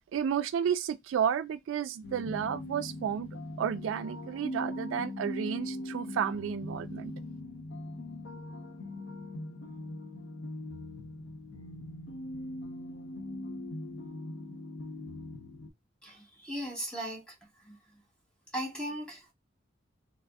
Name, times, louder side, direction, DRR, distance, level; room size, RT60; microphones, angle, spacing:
voice 1, 0.1-3.3 3.6-7.1, right 8 dB, 80° right, 0.3 m, -32 dB
sound 1, 2.0-15.7, left 1 dB, 70° left, 0.6 m, -41 dB
voice 2, 16.0-17.3 17.6-17.8 18.5-19.3, equal, 5° left, 1.2 m, -37 dB
3.4 x 2.0 x 3.3 m
head